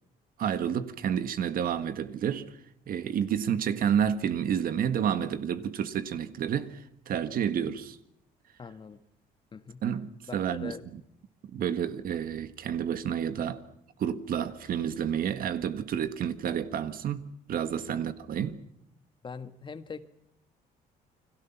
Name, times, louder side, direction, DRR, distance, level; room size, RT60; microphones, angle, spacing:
voice 1, 0.4-2.5 2.9-6.8 7.1-8.0 9.8-10.8 11.5-13.6 14.0-18.6, right 8 dB, 55° right, 1.7 m, -30 dB
voice 2, 8.6-9.0 9.5-9.8 10.3-10.9 17.9-18.0 19.2-20.1, left 5 dB, 30° left, 1.6 m, -42 dB
29.5 x 22.0 x 6.0 m
cardioid pair, 110°, 17 cm